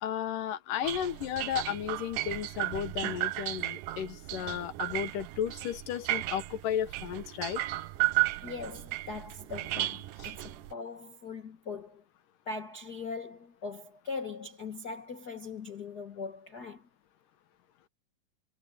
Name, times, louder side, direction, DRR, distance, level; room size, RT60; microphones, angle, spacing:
voice 1, 0.0-7.6 10.2-10.3, left 10 dB, 75° left, 2.7 m, -34 dB
sound 1, 0.8-10.7, right 18 dB, 75° right, 2.2 m, -34 dB
voice 2, 8.4-12.0 12.4-16.9, left 4 dB, 55° left, 1.0 m, -40 dB
omnidirectional pair, 4.0 m